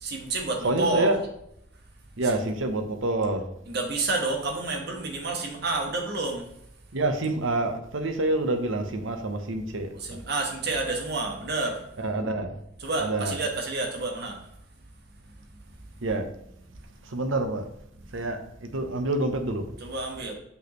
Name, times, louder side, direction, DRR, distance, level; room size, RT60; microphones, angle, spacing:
voice 1, 0.0-1.1 3.7-6.5 9.9-11.8 12.8-14.4 19.8-20.3, right 3 dB, 55° right, 2 dB, 1.3 m, -29 dB
voice 2, 0.6-1.2 2.2-3.5 6.9-9.9 12.0-12.5 13.0-13.4 16.0-16.3 17.1-17.7 18.1-19.6, right 2 dB, 85° right, 6 dB, 0.9 m, -27 dB
6.2 x 5.6 x 3.1 m, 0.77 s
head